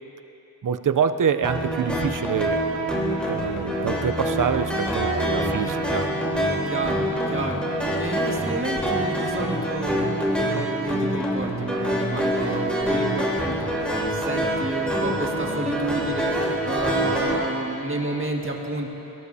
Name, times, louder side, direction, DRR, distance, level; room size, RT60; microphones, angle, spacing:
voice 1, 0.6-2.6 3.3-6.1, right 7 dB, 60° right, 11 dB, 0.6 m, -26 dB
sound 1, 1.4-17.3, right 1 dB, 5° left, 3.6 m, -25 dB
voice 2, 6.7-7.6 8.0-18.9, right 2 dB, 35° right, 0 dB, 2.0 m, -31 dB
21.5 x 18.0 x 2.8 m, 2.9 s
wide cardioid pair, 55°, 37 cm